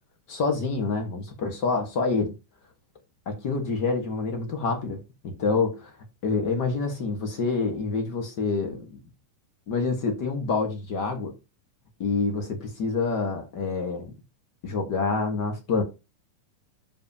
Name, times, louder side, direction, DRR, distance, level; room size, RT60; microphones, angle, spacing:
voice 1, 0.3-2.3 3.3-5.9 6.2-8.9 9.7-11.3 12.0-14.1 14.6-15.8, left 4 dB, 50° left, 1.2 m, -27 dB
12.5 x 5.1 x 2.7 m
omnidirectional pair, 3.8 m